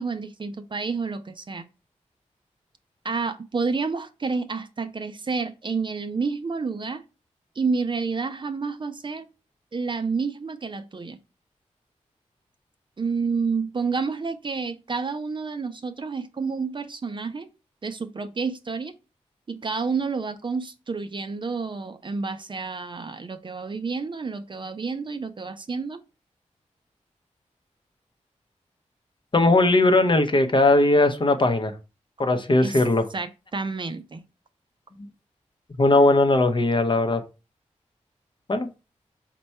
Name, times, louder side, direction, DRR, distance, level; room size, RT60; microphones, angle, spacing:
voice 1, 0.0-1.6 3.0-7.0 7.6-9.3 9.7-11.2 13.0-17.5 17.8-19.0 19.5-26.0 32.6-32.8 33.1-34.2, right 4 dB, 40° right, 0.5 m, -29 dB
voice 2, 29.3-31.7 32.2-33.0 35.8-37.2 38.5-38.7, left 2 dB, 40° left, 0.6 m, -19 dB
4.3 x 2.2 x 4.2 m
cardioid pair, 50°, 12 cm